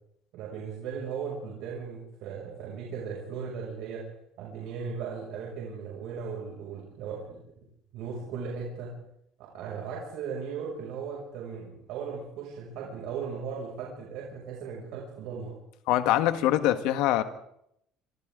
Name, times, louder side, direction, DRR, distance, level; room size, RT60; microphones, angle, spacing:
voice 1, 0.3-4.0 4.4-7.4 7.9-8.9 9.5-15.5, right 6 dB, 65° right, -3 dB, 6.7 m, -37 dB
voice 2, 15.9-17.2, left 13 dB, 70° left, 9 dB, 1.6 m, -23 dB
28.0 x 24.5 x 3.9 m, 0.76 s
cardioid pair, 170°, 0 cm